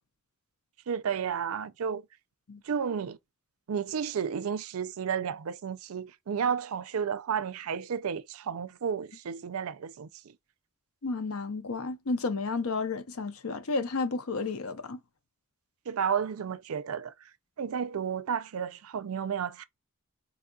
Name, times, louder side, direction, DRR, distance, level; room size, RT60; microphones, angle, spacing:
voice 1, 0.9-2.0 2.6-3.2 3.7-10.3 15.9-17.1 17.6-19.6, right 7 dB, 70° right, 0.4 m, -32 dB
voice 2, 11.0-15.0, left 3 dB, 75° left, 0.7 m, -32 dB
4.1 x 2.3 x 2.6 m
head